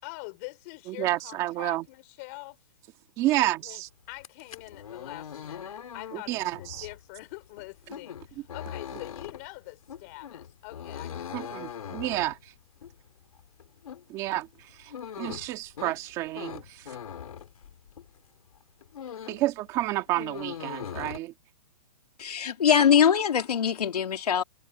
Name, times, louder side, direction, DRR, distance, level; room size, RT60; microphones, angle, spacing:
voice 1, 0.0-2.6 3.3-3.8 4.1-11.8, left 27 dB, 25° left, 5.3 m, -44 dB
voice 2, 0.9-1.9 3.2-3.9 6.1-6.9 11.3-12.5 14.1-16.9 19.3-21.3, right 16 dB, 15° right, 1.9 m, -30 dB
sound 1, 4.1-18.2 18.5-19.5 19.8-21.2, left 8 dB, 65° left, 3.3 m, -41 dB
voice 3, 22.2-24.4, left 8 dB, 80° left, 3.3 m, -22 dB
hypercardioid pair, 175°, 19 cm